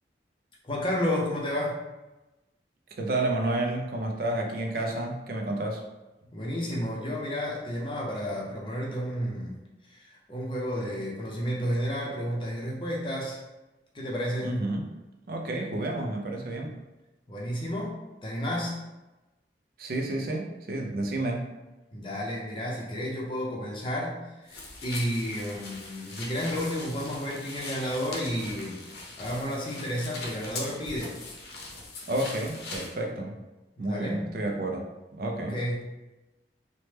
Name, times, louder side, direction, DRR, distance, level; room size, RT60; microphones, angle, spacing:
voice 1, 0.6-1.8 6.3-9.5 9.9-13.4 13.9-14.6 17.3-18.8 21.9-31.2 33.8-34.3 35.4-35.9, equal, 30° left, -4 dB, 0.5 m, -32 dB
voice 2, 3.0-5.8 14.4-14.9 15.3-16.8 19.8-21.5 32.1-33.4 33.8-34.8 35.1-35.6, right 1 dB, 55° right, 2 dB, 0.4 m, -30 dB
sound 1, 24.5-32.9, left 2 dB, 70° left, 0.6 m, -41 dB
3.0 x 2.1 x 3.2 m, 1.1 s
head